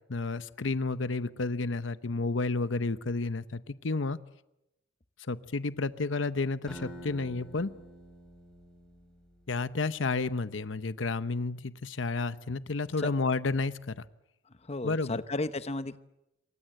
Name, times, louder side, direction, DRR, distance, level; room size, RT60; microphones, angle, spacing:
voice 1, 0.0-4.2 5.3-7.7 9.5-14.0 14.8-15.2, left 3 dB, 80° left, 14 dB, 0.9 m, -31 dB
Acoustic guitar, 6.7-9.7, right 1 dB, 5° left, 6.4 m, -48 dB
voice 2, 14.7-16.0, left 2 dB, 35° left, 12 dB, 1.0 m, -33 dB
28.0 x 24.0 x 7.8 m, 0.88 s
head